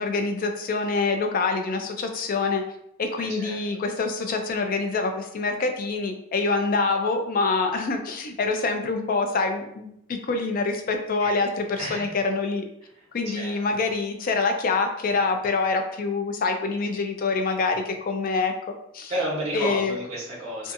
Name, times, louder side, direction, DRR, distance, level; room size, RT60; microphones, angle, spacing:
voice 1, 0.0-2.6 3.0-12.6 13.1-18.5 18.9-19.1 19.5-20.0 20.6-20.7, left 3 dB, 45° left, 5 dB, 0.4 m, -26 dB
voice 2, 3.2-3.6 11.2-11.4 11.8-12.1 13.3-13.8 19.1-20.7, equal, 35° right, -5 dB, 1.0 m, -31 dB
2.6 x 2.4 x 2.5 m, 0.76 s
head